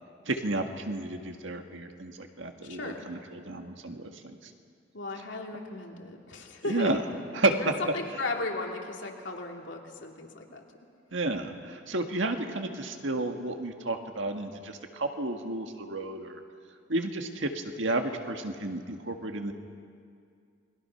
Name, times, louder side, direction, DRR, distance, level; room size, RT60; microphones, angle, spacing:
voice 1, 0.2-4.4 6.7-7.0 7.3-7.5 11.1-16.4 16.9-19.5, right 2 dB, 85° right, 5 dB, 1.8 m, -32 dB
voice 2, 2.6-3.1 4.9-7.1 7.6-10.6, left 2 dB, 75° left, 1 dB, 2.7 m, -36 dB
29.0 x 22.0 x 5.9 m, 2.3 s
head